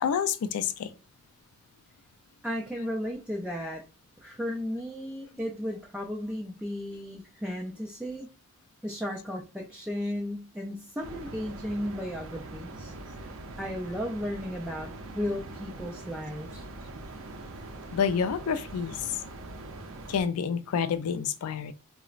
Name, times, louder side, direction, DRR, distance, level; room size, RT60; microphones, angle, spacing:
voice 1, 0.0-0.9 17.9-19.0 20.1-21.7, left 7 dB, 80° left, 0.4 m, -28 dB
voice 2, 2.4-3.8 4.2-8.3 8.8-13.3 13.6-16.7, equal, 5° right, 0.3 m, -35 dB
sound 1, 11.0-20.2, right 2 dB, 65° right, 0.5 m, -43 dB
3.9 x 2.0 x 2.4 m
head